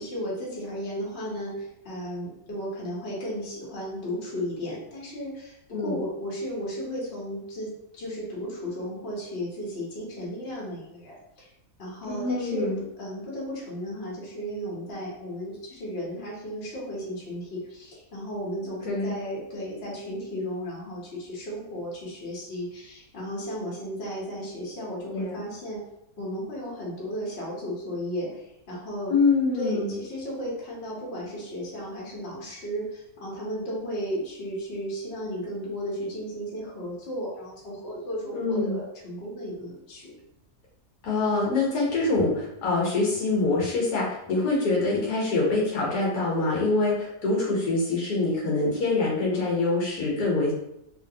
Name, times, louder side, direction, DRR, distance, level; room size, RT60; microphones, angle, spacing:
voice 1, 0.0-11.5 11.8-25.8 26.2-29.1 29.5-40.1, equal, 45° left, -5 dB, 1.1 m, -34 dB
voice 2, 12.1-12.8 18.8-19.2 25.1-25.4 29.1-30.0 38.3-38.8 41.0-50.5, left 3 dB, 70° left, -4 dB, 1.3 m, -25 dB
3.2 x 2.5 x 2.7 m, 0.83 s
omnidirectional pair, 1.7 m